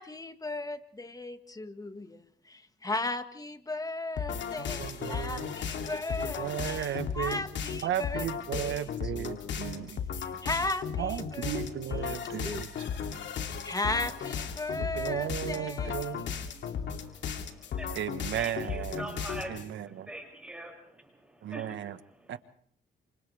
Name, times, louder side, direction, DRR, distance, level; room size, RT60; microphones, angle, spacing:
voice 1, 0.0-9.8 10.1-11.6 11.9-13.1 13.4-16.7, left 2 dB, 20° left, 1.7 m, -37 dB
sound 1, 4.2-19.7, left 7 dB, 65° left, 2.5 m, -36 dB
voice 2, 4.6-5.5 6.2-7.4 7.8-10.0 11.0-12.7 13.1-13.2 14.8-16.3 17.9-19.1 19.5-20.1 21.4-22.0 22.3-22.4, right 11 dB, 70° right, 1.3 m, -35 dB
voice 3, 16.9-18.0 18.3-21.9 22.1-22.4, right 1 dB, 5° right, 6.7 m, -44 dB
28.5 x 27.0 x 3.4 m
cardioid pair, 90°, 20 cm